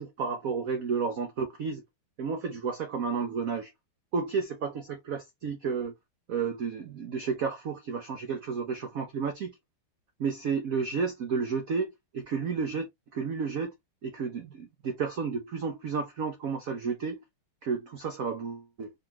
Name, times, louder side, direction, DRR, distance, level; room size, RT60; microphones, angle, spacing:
voice 1, 0.0-1.8 2.2-3.7 4.1-5.9 6.3-9.5 10.2-13.7 14.0-17.2 17.6-18.9, right 5 dB, 80° right, 0.7 m, -32 dB
3.8 x 3.7 x 2.8 m
omnidirectional pair, 2.4 m